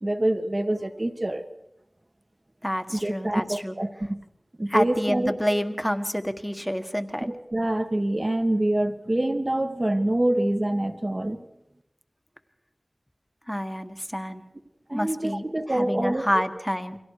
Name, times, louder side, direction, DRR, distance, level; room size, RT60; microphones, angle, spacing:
voice 1, 0.0-1.4 2.9-4.2 4.6-5.6 7.3-11.5 14.9-16.4, right 1 dB, 40° right, 6 dB, 1.8 m, -26 dB
voice 2, 2.6-3.8 4.7-7.3 13.5-14.4 14.9-17.0, equal, 5° left, 8 dB, 1.7 m, -28 dB
30.0 x 24.0 x 4.9 m, 0.86 s
wide cardioid pair, 45°, 0 cm